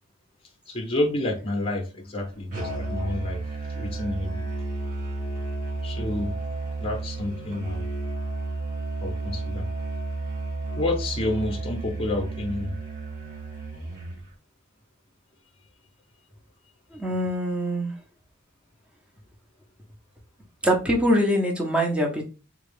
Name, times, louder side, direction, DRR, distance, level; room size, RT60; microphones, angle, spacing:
voice 1, 0.7-3.4 3.7-4.5 5.8-6.4 6.8-7.8 9.0-9.7 10.8-12.8, left 2 dB, 30° left, 0.7 m, -29 dB
Musical instrument, 2.5-14.2, right 3 dB, 45° right, 1.9 m, -32 dB
voice 2, 16.9-17.9 20.6-22.2, equal, 5° right, 0.7 m, -23 dB
3.6 x 2.3 x 3.4 m
head